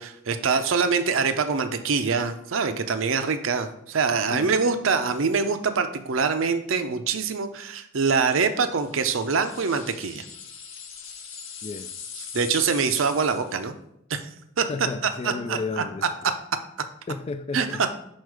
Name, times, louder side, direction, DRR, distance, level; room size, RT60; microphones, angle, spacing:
voice 1, 0.0-10.2 12.2-13.7 14.1-14.2 14.6-14.7 15.2-15.8 17.5-17.7, right 5 dB, 70° right, 0.6 m, -24 dB
sound 1, 8.8-13.6, left 6 dB, 70° left, 1.0 m, -41 dB
voice 2, 14.7-16.3 17.1-17.9, left 3 dB, 30° left, 0.3 m, -33 dB
6.3 x 4.5 x 4.8 m
head